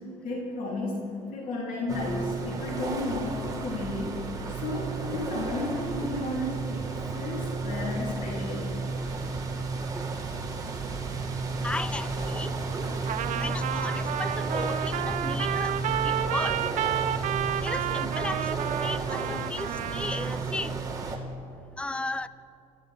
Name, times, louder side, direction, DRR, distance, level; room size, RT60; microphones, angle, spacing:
voice 1, 0.2-1.0 1.3-4.2 4.5-6.8 7.1-8.7, left 2 dB, 65° left, -3 dB, 3.3 m, -33 dB
sound 1, 1.9-21.2, right 3 dB, 25° right, 2.4 m, -32 dB
voice 2, 11.6-12.5 13.4-15.8 16.0-16.6 17.6-20.8 21.8-22.3, left 2 dB, 5° left, 15 dB, 0.5 m, -35 dB
Trumpet, 13.1-20.4, right 10 dB, 55° right, 0.7 m, -31 dB
27.0 x 14.5 x 3.6 m, 2.6 s
cardioid pair, 100°, 15 cm